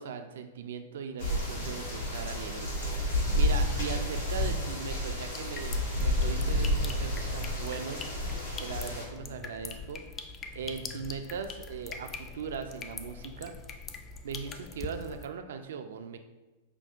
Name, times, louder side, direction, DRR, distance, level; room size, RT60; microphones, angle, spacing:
voice 1, 0.0-8.1 8.6-10.0 10.5-13.5 14.2-16.2, right 6 dB, 70° right, 7 dB, 0.3 m, -39 dB
sound 1, 1.2-9.0, left 1 dB, 85° left, 1.4 m, -30 dB
sound 2, 5.3-15.3, left 5 dB, 30° left, 0.3 m, -43 dB
5.7 x 2.2 x 2.5 m, 1.1 s
hypercardioid pair, 105°, 0 cm